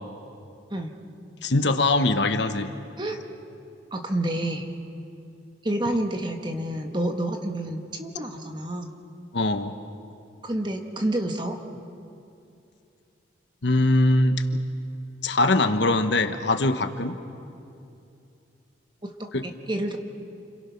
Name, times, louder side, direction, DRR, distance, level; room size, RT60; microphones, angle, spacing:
voice 1, 1.4-2.7 9.3-9.7 13.6-14.6 15.2-17.2 19.3-19.4, left 2 dB, 70° left, 8 dB, 1.2 m, -22 dB
voice 2, 3.9-4.7 5.6-8.9 10.4-11.6 19.0-20.0, right 1 dB, 25° right, 4 dB, 1.6 m, -29 dB
29.5 x 26.5 x 5.9 m, 2.6 s
head